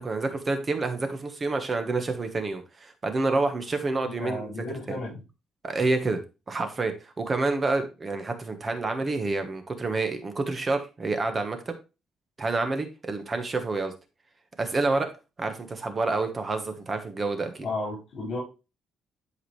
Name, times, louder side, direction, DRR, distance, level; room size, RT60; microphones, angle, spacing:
voice 1, 0.0-4.5 4.9-5.0 5.6-6.2 6.5-11.8 12.4-13.9 14.6-15.1 15.4-17.6, right 3 dB, 25° right, 7 dB, 1.2 m, -28 dB
voice 2, 4.2-5.2 17.6-18.4, left 2 dB, 50° left, -5 dB, 4.9 m, -33 dB
11.5 x 4.8 x 3.2 m, 0.28 s
cardioid pair, 140°, 0 cm